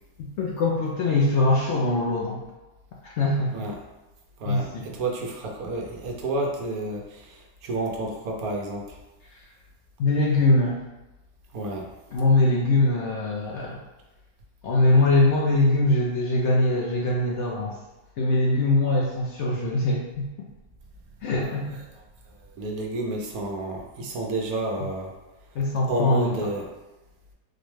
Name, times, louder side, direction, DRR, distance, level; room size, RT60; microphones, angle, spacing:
voice 1, 0.2-2.4 3.0-3.5 4.5-4.8 10.0-10.8 12.1-13.8 14.6-17.8 18.2-20.3 21.2-21.8 25.6-26.4, left 2 dB, 65° left, -3 dB, 0.7 m, -22 dB
voice 2, 5.0-7.0 7.6-8.8 11.5-11.8 21.5-21.6 22.6-25.1 25.9-26.6, right 2 dB, 75° right, 0 dB, 1.1 m, -30 dB
4.1 x 2.1 x 3.1 m, 1.1 s
omnidirectional pair, 1.6 m